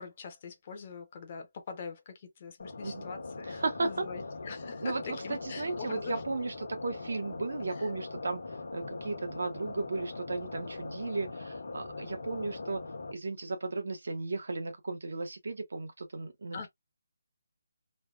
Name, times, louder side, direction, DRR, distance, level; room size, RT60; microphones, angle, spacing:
voice 1, 0.0-6.2 7.8-7.9 16.5-16.7, left 5 dB, 25° left, 0.7 m, -43 dB
sound 1, 2.6-13.1, left 3 dB, 80° left, 1.1 m, -41 dB
voice 2, 3.5-4.1 4.8-8.4 8.7-12.8 13.1-16.7, right 3 dB, 60° right, 0.8 m, -35 dB
3.2 x 2.2 x 2.4 m
hypercardioid pair, 175°, 0 cm